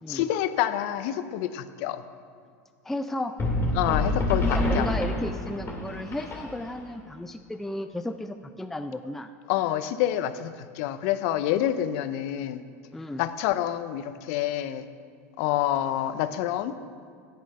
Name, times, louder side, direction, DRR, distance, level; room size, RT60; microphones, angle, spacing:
voice 1, 0.1-2.0 3.7-4.9 9.5-12.6 13.2-14.9 15.4-16.7, left 12 dB, 65° left, 12 dB, 0.5 m, -27 dB
voice 2, 2.8-3.3 4.5-9.3 12.9-13.2, left 1 dB, 5° left, 7 dB, 0.4 m, -34 dB
sound 1, 3.4-6.9, left 1 dB, 25° left, 2.3 m, -27 dB
9.1 x 8.6 x 5.4 m, 2.1 s
supercardioid pair, 105°, 8 cm